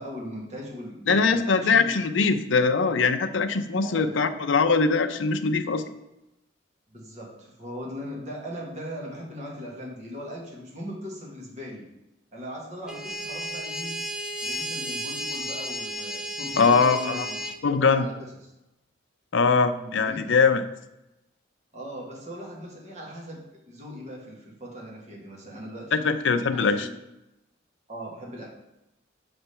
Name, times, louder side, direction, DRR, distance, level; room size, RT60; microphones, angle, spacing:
voice 1, 0.0-1.9 3.8-4.4 6.9-11.9 12.3-14.0 14.4-17.4 17.8-18.5 19.7-20.3 21.7-26.1 26.5-26.9 27.9-28.5, equal, 35° right, -2 dB, 1.3 m, -39 dB
voice 2, 1.1-5.8 16.6-17.3 17.6-18.1 19.3-20.6 25.9-26.9, left 4 dB, 70° left, 8 dB, 0.5 m, -22 dB
sound 1, 12.9-17.6, right 1 dB, 5° right, 0.4 m, -33 dB
6.9 x 3.3 x 5.5 m, 0.93 s
head